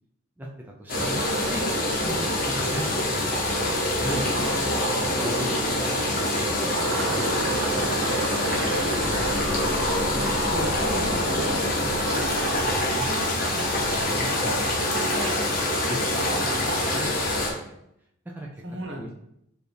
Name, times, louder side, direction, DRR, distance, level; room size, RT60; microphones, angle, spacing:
voice 1, 0.4-2.0 2.5-3.6 4.0-4.5 5.0-5.8 6.2-7.3 7.8-9.6 9.8-11.9 12.2-13.6 13.9-15.4 15.8-17.7 18.3-18.6 19.0-19.1, equal, 10° right, -2 dB, 0.4 m, -38 dB
sound 1, 0.9-17.5, left 1 dB, 45° left, 0.8 m, -25 dB
voice 2, 4.3-6.5 7.3-7.9 10.5-10.8 13.5-13.7 16.3-16.5 18.6-19.1, right 1 dB, 65° right, 0 dB, 1.0 m, -36 dB
sound 2, 4.3-17.1, right 4 dB, 85° right, 0.4 m, -36 dB
sound 3, 9.0-14.2 14.5-14.6, left 3 dB, 65° left, 0.4 m, -35 dB
4.5 x 2.6 x 3.3 m, 0.77 s
head